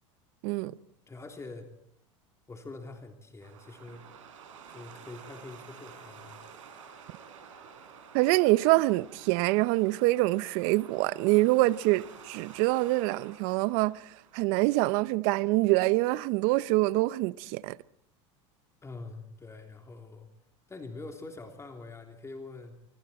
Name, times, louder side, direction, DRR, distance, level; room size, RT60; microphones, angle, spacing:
voice 1, 0.4-0.7 8.1-14.0 14.3-17.8, right 20 dB, 60° right, 0.8 m, -25 dB
voice 2, 1.1-1.7 2.5-4.0 4.7-6.4 18.8-20.3 20.7-22.8, left 3 dB, 15° left, 3.3 m, -44 dB
sound 1, 3.4-14.6, right 6 dB, 85° right, 5.4 m, -51 dB
25.0 x 24.0 x 4.4 m
supercardioid pair, 105°, 16 cm